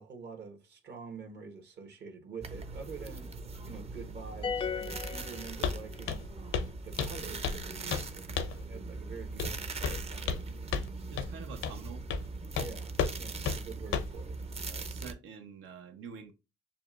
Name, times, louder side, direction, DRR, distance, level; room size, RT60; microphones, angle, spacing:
voice 1, 0.0-3.3 3.6-6.2 6.8-10.4 12.6-14.4, right 5 dB, 60° right, 1.3 m, -46 dB
sound 1, 2.4-15.1, right 3 dB, 30° right, 0.6 m, -41 dB
sound 2, 4.4-6.1, left 6 dB, 25° left, 0.3 m, -36 dB
Walk footsteps, 5.6-5.8 6.1-6.3 6.5-6.7 7.0-7.6 7.9-8.1 8.4-8.6 9.4-9.6 9.8-10.4 10.7-10.9 11.2-11.3 11.6-11.8 12.1-12.3 12.6-12.7 13.0-13.2 13.5-13.6 13.9-14.2, left 6 dB, 85° left, 0.7 m, -32 dB
voice 2, 11.1-12.0 14.7-16.3, right 5 dB, 85° right, 1.0 m, -47 dB
6.7 x 2.4 x 2.4 m
cardioid pair, 90°, 20 cm